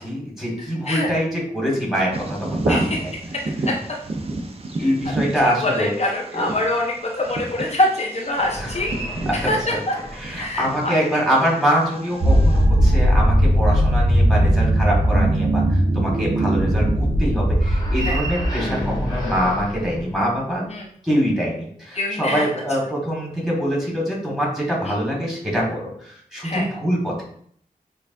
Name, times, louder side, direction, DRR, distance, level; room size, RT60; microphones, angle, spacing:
voice 1, 0.0-3.1 4.8-5.9 6.3-6.5 8.5-8.7 9.2-9.8 10.1-20.7 21.0-27.2, equal, ahead, -4 dB, 1.6 m, -24 dB
Bird vocalization bird call bird song, 2.1-12.6, right 2 dB, 40° right, 0.6 m, -31 dB
voice 2, 2.7-3.0 3.3-3.7 4.8-4.9 5.4-9.9 10.4-10.9 18.0-18.2 20.7-20.9 21.9-22.5 24.9-25.0 26.4-26.7, left 1 dB, 45° left, -1 dB, 0.5 m, -25 dB
sound 1, 8.4-10.4 11.0-13.4 17.5-20.7, equal, 25° left, 0.9 m, -32 dB
sound 2, 12.2-19.0, right 1 dB, 85° right, 0.9 m, -18 dB
6.3 x 2.3 x 2.6 m, 0.62 s
wide cardioid pair, 105°, 15 cm